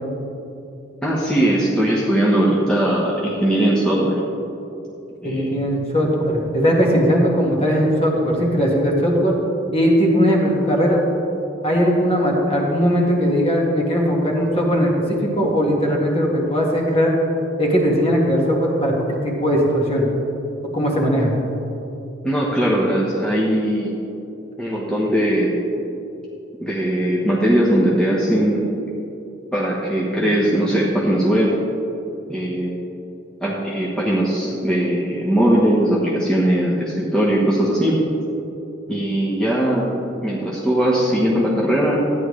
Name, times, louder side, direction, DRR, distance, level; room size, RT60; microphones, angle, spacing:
voice 1, 1.0-4.1 5.2-5.5 22.2-23.9 24.6-25.5 26.6-28.6 29.5-31.5 32.3-32.7 33.4-38.0 38.9-39.9 40.2-42.0, right 1 dB, 5° left, -6 dB, 1.0 m, -19 dB
voice 2, 5.2-9.3 9.7-11.0 11.6-17.1 17.6-20.1 20.7-21.3, equal, 30° left, -2 dB, 1.7 m, -19 dB
14.0 x 9.8 x 3.2 m, 2.9 s
head